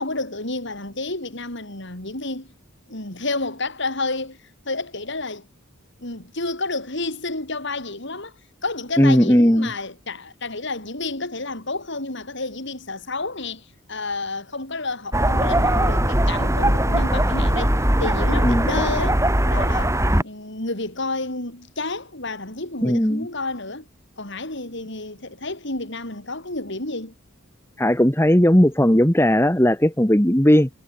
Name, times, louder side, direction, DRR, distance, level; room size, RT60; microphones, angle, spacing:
voice 1, 0.0-2.5 2.9-4.4 4.7-5.5 6.0-8.3 8.6-23.8 24.2-27.1, left 2 dB, 60° left, 5.8 m, -30 dB
voice 2, 9.0-9.7 18.4-18.7 22.8-23.3 27.8-30.7, equal, 10° left, 2.0 m, -17 dB
sound 1, 15.1-20.2, right 1 dB, 15° right, 6.3 m, -20 dB
head